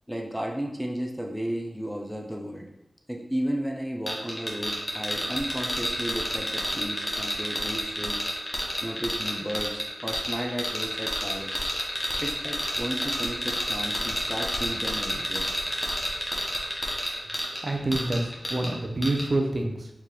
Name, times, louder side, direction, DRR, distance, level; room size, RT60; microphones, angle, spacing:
voice 1, 0.1-2.7 3.1-8.3 8.8-11.6 12.2-15.5, equal, ahead, 0 dB, 0.5 m, -33 dB
sound 1, 4.1-18.7 19.0-19.3, equal, 20° left, 1.0 m, -30 dB
voice 2, 17.6-19.9, right 2 dB, 50° right, 2 dB, 0.6 m, -27 dB
4.4 x 3.5 x 3.0 m, 0.90 s
wide cardioid pair, 100°, 0 cm